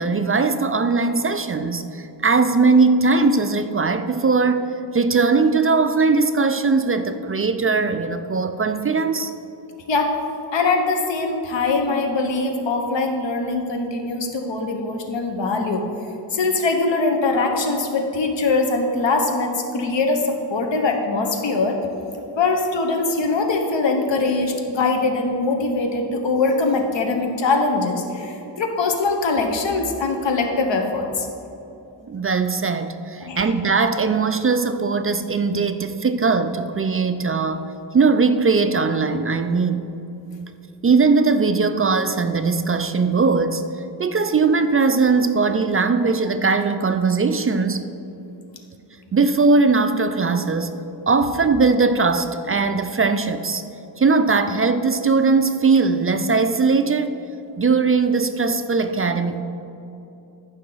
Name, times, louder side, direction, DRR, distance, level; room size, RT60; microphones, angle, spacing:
voice 1, 0.0-9.3 19.7-19.8 32.1-37.6 37.9-39.9 40.8-43.6 44.0-47.8 49.1-50.8 51.1-53.6 54.0-57.2 57.6-59.4, right 4 dB, 30° right, 9 dB, 0.4 m, -19 dB
voice 2, 10.5-15.8 16.3-21.8 22.4-31.3 33.2-33.5, left 3 dB, 80° left, 3 dB, 1.2 m, -22 dB
14.0 x 5.6 x 4.0 m, 2.9 s
wide cardioid pair, 100°, 44 cm